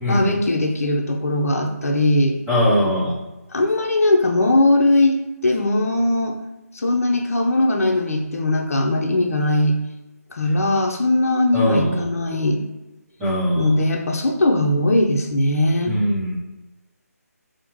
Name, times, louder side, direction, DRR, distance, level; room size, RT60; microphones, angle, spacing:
voice 1, 0.1-2.4 3.5-5.2 5.4-6.4 6.7-9.8 10.3-12.6 13.6-16.0, left 1 dB, 60° left, 1 dB, 0.5 m, -19 dB
voice 2, 2.5-3.1 11.5-12.0 13.2-13.7 15.9-16.4, equal, 5° right, -10 dB, 0.7 m, -20 dB
3.2 x 2.0 x 3.0 m, 1.0 s
hypercardioid pair, 170°, 9 cm